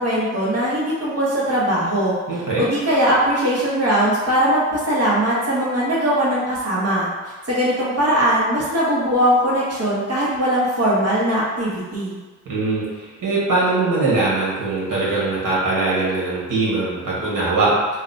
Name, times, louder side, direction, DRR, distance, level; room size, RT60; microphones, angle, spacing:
voice 1, 0.0-2.1 2.6-12.2, equal, 50° right, -7 dB, 1.1 m, -20 dB
voice 2, 2.3-2.6 12.4-17.8, right 3 dB, 90° right, -7 dB, 1.2 m, -21 dB
2.8 x 2.2 x 3.9 m, 1.3 s
cardioid pair, 85°, 31 cm